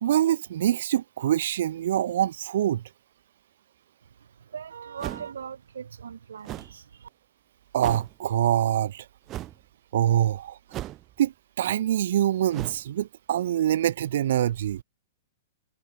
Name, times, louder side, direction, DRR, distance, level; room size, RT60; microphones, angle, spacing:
voice 1, 0.0-2.8 7.7-9.0 9.9-10.6 11.2-14.8, right 11 dB, 65° right, 0.8 m, -25 dB
voice 2, 4.1-7.1, right 7 dB, 85° right, 1.8 m, -40 dB
sound 1, 5.0-5.4 6.4-6.8 7.8-8.1 9.3-9.6 10.7-11.2 12.5-12.9, right 14 dB, 30° right, 1.6 m, -36 dB
hypercardioid pair, 135°, 0 cm